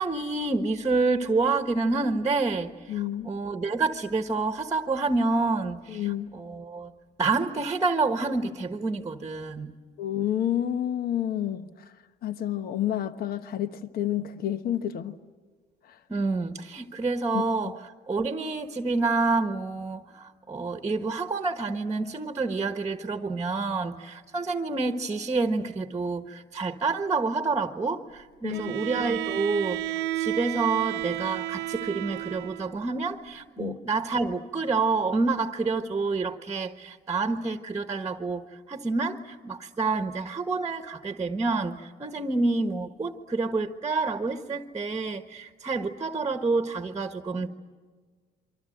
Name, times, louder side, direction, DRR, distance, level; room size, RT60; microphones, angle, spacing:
voice 1, 0.0-6.9 7.2-9.7 16.1-17.7 18.1-47.5, right 3 dB, 20° right, 1.4 m, -28 dB
voice 2, 2.9-3.3 5.9-6.3 10.0-11.7 12.2-15.2 15.8-16.0 17.3-17.4 28.4-28.7 33.6-33.8, left 11 dB, 60° left, 1.2 m, -29 dB
Bowed string instrument, 28.5-32.8, right 14 dB, 85° right, 0.9 m, -32 dB
27.5 x 25.0 x 7.8 m
cardioid pair, 110°, 17 cm